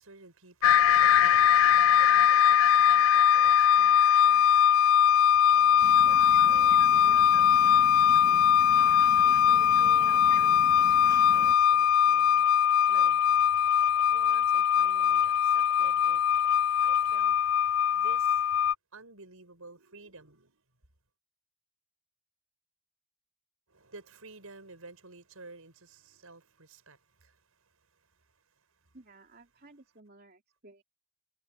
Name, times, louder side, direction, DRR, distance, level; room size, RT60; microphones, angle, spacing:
voice 1, 0.0-9.1 9.6-12.5 12.9-13.5 14.1-16.2 16.8-17.4 17.9-18.4 18.9-20.6 23.7-29.0, right 3 dB, 80° right, 5.9 m, -51 dB
sound 1, 0.6-18.7, left 9 dB, 65° left, 0.3 m, -21 dB
sound 2, 3.9-17.2, right 5 dB, 20° right, 6.2 m, -57 dB
sound 3, 5.8-11.5, left 1 dB, 15° left, 2.2 m, -43 dB
voice 2, 28.9-30.8, right 2 dB, 45° right, 3.5 m, -55 dB
head